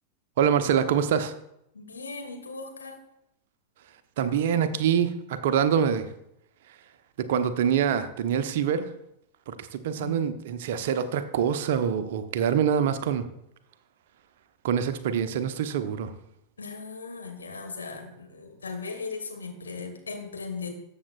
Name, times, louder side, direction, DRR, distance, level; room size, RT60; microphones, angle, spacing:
voice 1, 0.4-1.3 4.2-6.1 7.2-8.9 9.5-13.3 14.6-16.1, right 8 dB, 55° right, 10 dB, 0.8 m, -25 dB
voice 2, 1.7-3.0 9.9-10.3 16.6-20.7, left 4 dB, 75° left, 2 dB, 2.3 m, -38 dB
20.5 x 7.2 x 2.4 m, 0.80 s
figure-of-eight pair, 90°, 0 cm